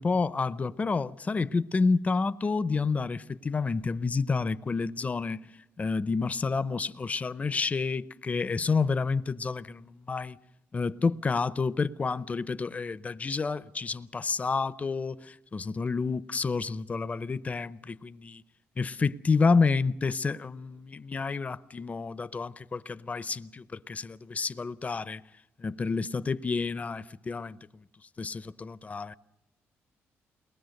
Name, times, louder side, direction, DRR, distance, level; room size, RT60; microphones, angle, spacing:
voice 1, 0.0-5.4 5.8-10.4 10.7-18.4 18.8-25.2 25.6-27.6 28.2-29.1, left 4 dB, 30° left, 0.7 m, -29 dB
22.5 x 20.0 x 6.5 m
cardioid pair, 100°, 5 cm